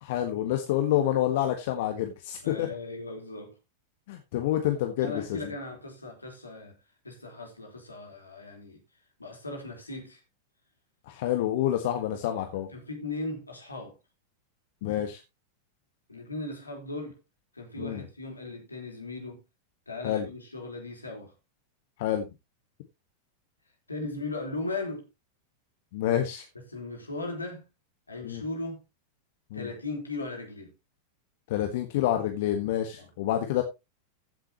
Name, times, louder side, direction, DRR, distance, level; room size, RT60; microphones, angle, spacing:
voice 1, 0.0-2.7 4.1-5.4 11.1-12.7 14.8-15.2 17.8-18.0 20.0-20.2 22.0-22.2 25.9-26.4 28.2-28.4 29.5-29.7 31.5-33.6, left 12 dB, 50° left, 1.5 m, -28 dB
voice 2, 2.4-3.5 5.0-6.8 7.0-8.8 9.2-10.2 12.1-12.2 12.7-13.9 16.1-17.2 17.5-19.4 19.9-21.3 23.9-25.0 26.5-27.7 28.1-28.8 29.5-30.7 33.0-33.1, left 2 dB, 80° left, 4.1 m, -37 dB
15.0 x 7.9 x 3.0 m
figure-of-eight pair, 90°, 0 cm